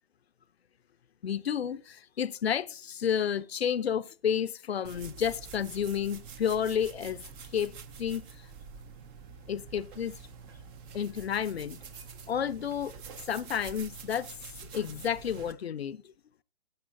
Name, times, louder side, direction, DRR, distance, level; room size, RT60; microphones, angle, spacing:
voice 1, 1.2-7.2 7.5-7.7 8.0-8.2 9.5-10.2 10.9-11.8 12.3-12.9 13.3-14.3 14.7-16.0, left 8 dB, 85° left, 0.7 m, -31 dB
sound 1, 4.8-15.5, right 6 dB, 15° right, 0.5 m, -47 dB
18.5 x 8.5 x 2.7 m
hypercardioid pair, 145°, 30 cm